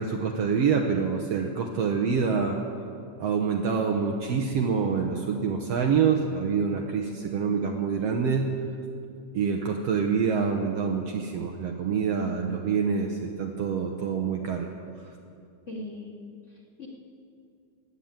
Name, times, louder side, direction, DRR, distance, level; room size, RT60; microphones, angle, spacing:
voice 1, 0.0-2.6 3.2-8.6 9.3-14.7, right 6 dB, 65° right, 3 dB, 1.8 m, -26 dB
voice 2, 15.7-16.2 16.5-16.9, left 2 dB, 25° left, -3 dB, 2.5 m, -40 dB
15.5 x 9.8 x 8.9 m, 2.4 s
omnidirectional pair, 3.4 m